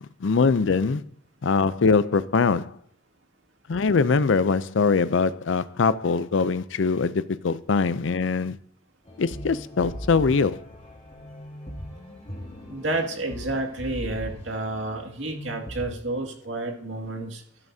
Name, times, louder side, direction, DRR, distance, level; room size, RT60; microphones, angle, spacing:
voice 1, 0.2-1.0 1.4-2.7 3.7-8.6 9.2-10.6, left 4 dB, 80° left, 0.5 m, -22 dB
sound 1, 9.1-15.9, equal, 35° left, 2.5 m, -39 dB
voice 2, 12.7-17.4, right 2 dB, 80° right, 2.2 m, -30 dB
13.0 x 10.5 x 2.8 m
head